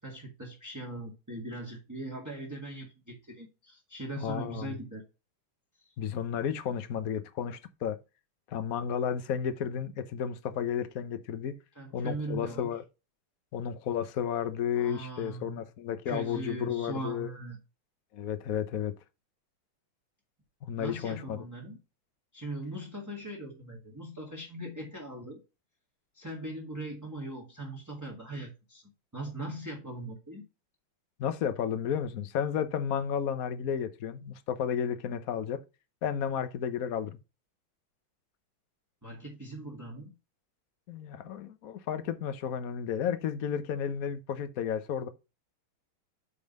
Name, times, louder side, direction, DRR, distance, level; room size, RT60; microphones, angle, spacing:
voice 1, 0.0-5.0 11.8-12.7 14.7-15.6 16.1-17.6 20.7-21.8 22.3-25.4 26.1-28.8 29.1-30.4 39.0-40.1, right 2 dB, 10° right, 1.7 m, -40 dB
voice 2, 4.2-4.8 6.0-8.0 8.5-11.5 11.9-12.8 13.5-17.3 18.1-18.9 20.7-21.4 31.2-35.6 36.0-37.2 40.9-45.1, left 8 dB, 55° left, 1.1 m, -32 dB
8.3 x 3.9 x 5.3 m
omnidirectional pair, 2.3 m